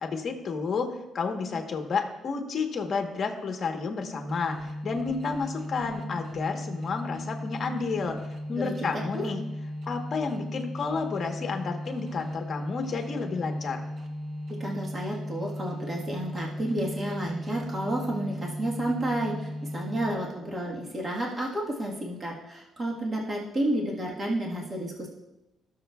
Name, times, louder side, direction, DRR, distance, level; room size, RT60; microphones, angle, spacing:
voice 1, 0.0-8.2 8.5-9.4 9.9-13.8, left 4 dB, 40° left, 4 dB, 1.1 m, -31 dB
sound 1, 4.3-20.4, left 1 dB, 50° right, 0.9 m, -37 dB
voice 2, 8.5-9.2 14.6-25.1, right 1 dB, 25° right, -2 dB, 1.4 m, -31 dB
17.0 x 6.7 x 2.3 m, 0.97 s
cardioid pair, 135°, 0 cm